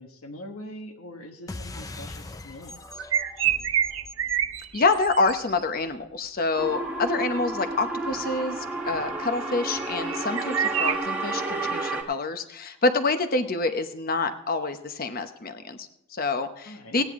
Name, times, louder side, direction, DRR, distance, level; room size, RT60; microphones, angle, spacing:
voice 1, 0.0-3.0 16.6-17.0, left 1 dB, 85° left, 2 dB, 1.5 m, -43 dB
sound 1, 1.5-6.4, left 2 dB, 15° left, 0.5 m, -42 dB
sound 2, 2.9-5.6 9.8-10.9, right 9 dB, 65° right, 0.6 m, -27 dB
voice 2, 4.7-17.0, left 3 dB, 45° left, 8 dB, 0.9 m, -27 dB
sound 3, 6.6-12.0, right 2 dB, 10° right, 1.5 m, -31 dB
16.5 x 9.9 x 3.7 m, 0.76 s
head